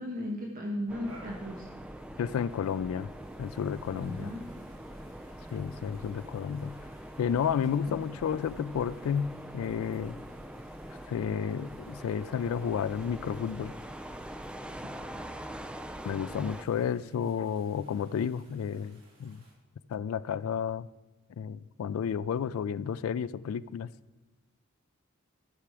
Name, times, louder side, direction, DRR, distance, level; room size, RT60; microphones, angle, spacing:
voice 1, 0.0-1.7 3.9-4.4 7.9-8.0 14.8-15.0, equal, 45° right, 0 dB, 1.1 m, -36 dB
sound 1, 0.9-16.7, right 1 dB, 5° right, 0.4 m, -44 dB
sound 2, 1.0-19.5, right 1 dB, 75° right, 3.2 m, -60 dB
voice 2, 2.2-3.1 3.4-4.3 5.5-6.7 7.2-10.2 11.1-13.7 16.0-19.4 19.9-20.9 21.4-23.9, left 7 dB, 80° left, 17 dB, 0.3 m, -31 dB
13.5 x 5.9 x 4.8 m, 1.2 s
head